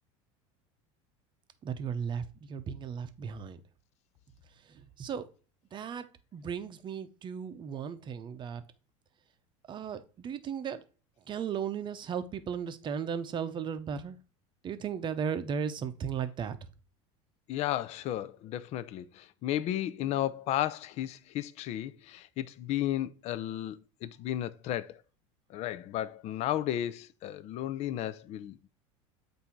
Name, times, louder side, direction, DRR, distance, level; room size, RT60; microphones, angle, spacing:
voice 1, 1.6-3.6 4.7-5.3 5.7-6.1 6.3-8.6 9.7-10.8 11.3-14.2 14.6-16.6, right 7 dB, 30° right, 0.7 m, -36 dB
voice 2, 17.5-25.0 25.5-28.7, left 12 dB, 45° left, 0.5 m, -34 dB
8.1 x 2.7 x 4.5 m
supercardioid pair, 120°, 15 cm